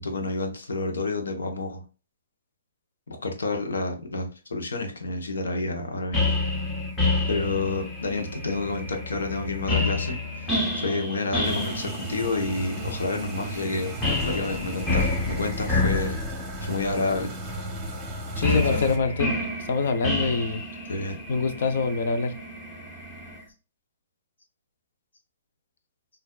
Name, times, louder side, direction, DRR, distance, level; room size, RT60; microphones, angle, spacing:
voice 1, 0.0-1.8 3.1-6.2 7.3-13.9 14.2-16.2 16.6-17.3 18.4-18.9 20.9-21.2, left 3 dB, 90° left, 4 dB, 1.0 m, -29 dB
sound 1, 6.1-23.4, left 2 dB, 15° left, 1.1 m, -29 dB
sound 2, 11.4-19.0, right 1 dB, 20° right, 0.8 m, -36 dB
voice 2, 18.4-19.3 19.6-20.6 21.3-22.3, left 4 dB, 65° left, 9 dB, 0.6 m, -24 dB
4.3 x 2.6 x 2.3 m, 0.34 s
hypercardioid pair, 145°, 0 cm